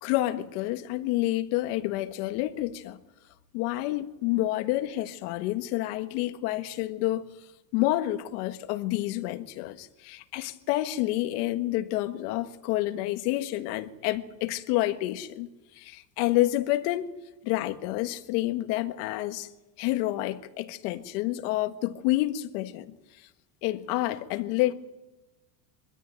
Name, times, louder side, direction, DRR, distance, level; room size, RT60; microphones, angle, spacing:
voice 1, 0.0-3.0 3.5-7.3 7.7-15.5 15.7-17.1 17.4-19.5 19.8-22.9 23.6-24.7, left 16 dB, 70° left, 1.6 m, -29 dB
24.0 x 13.5 x 9.0 m
cardioid pair, 155°, 47 cm